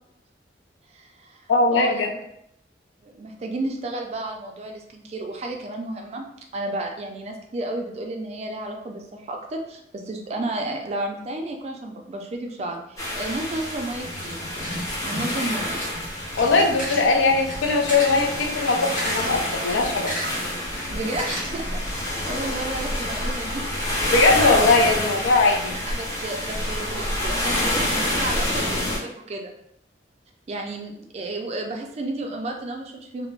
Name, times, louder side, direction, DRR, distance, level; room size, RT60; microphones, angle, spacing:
voice 1, 0.9-2.2 3.0-14.4 15.0-15.8 17.0-17.1 20.9-23.7 25.7-29.5 30.5-33.3, right 2 dB, 35° right, 3 dB, 0.3 m, -32 dB
voice 2, 1.5-2.1 16.4-20.1 24.1-25.7, left 3 dB, 90° left, 3 dB, 0.4 m, -20 dB
sound 1, 13.0-29.0, left 1 dB, 15° left, 0.6 m, -28 dB
sound 2, 14.0-21.9, equal, 45° left, 0.8 m, -35 dB
2.4 x 2.0 x 3.1 m, 0.76 s
head